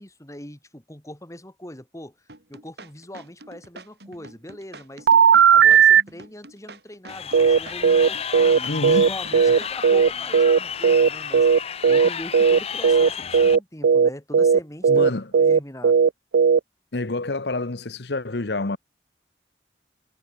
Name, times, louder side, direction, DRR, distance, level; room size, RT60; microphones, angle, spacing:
voice 1, 0.0-2.2 2.5-5.1 5.5-11.5 11.8-15.1 15.3-16.0, left 1 dB, 15° left, 3.2 m, -41 dB
sound 1, 2.3-10.1, right 2 dB, 65° right, 5.8 m, -45 dB
sound 2, 5.1-6.0 7.3-11.1 11.3-12.1 12.3-12.6 12.8-13.1 13.3-16.6, right 6 dB, 85° right, 0.4 m, -16 dB
Crowd, 7.1-13.6, left 7 dB, 35° left, 0.6 m, -32 dB
voice 2, 8.7-9.1 14.9-15.3 16.9-18.8, left 2 dB, 70° left, 1.1 m, -28 dB
head